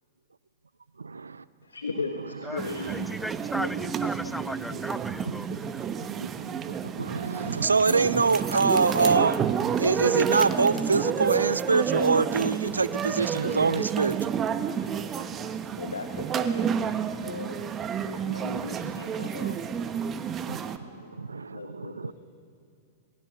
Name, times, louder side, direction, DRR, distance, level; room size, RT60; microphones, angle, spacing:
voice 1, 1.0-1.4 5.3-5.6 6.0-9.4 9.8-14.3 20.5-20.6 21.2-22.1, right 4 dB, 85° right, 17 dB, 0.6 m, -25 dB
voice 2, 1.6-3.7 15.8-16.8 17.2-19.6 21.5-22.1, left 4 dB, 85° left, 4 dB, 1.5 m, -37 dB
sound 1, 2.6-20.8, right 8 dB, 25° right, 1.2 m, -30 dB
voice 3, 2.9-5.9, equal, ahead, 18 dB, 0.5 m, -37 dB
26.5 x 20.0 x 6.6 m, 2.5 s
hypercardioid pair, 100°, 0 cm